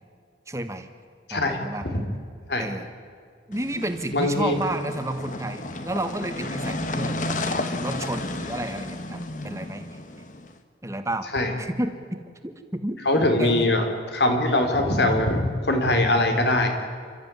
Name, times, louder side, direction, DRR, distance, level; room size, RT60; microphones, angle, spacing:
voice 1, 0.5-0.9 1.3-1.9 2.6-2.9 3.5-7.4 7.8-10.0 10.8-11.3 11.6-13.0 13.4-13.7, right 1 dB, 15° right, 8 dB, 1.4 m, -31 dB
sound 1, 3.5-10.5, left 2 dB, 45° left, 1.5 m, -32 dB
voice 2, 4.1-4.6 11.3-11.5 13.0-13.8 14.1-16.7, left 1 dB, 70° left, 5 dB, 3.3 m, -22 dB
28.5 x 13.5 x 9.6 m, 2.1 s
head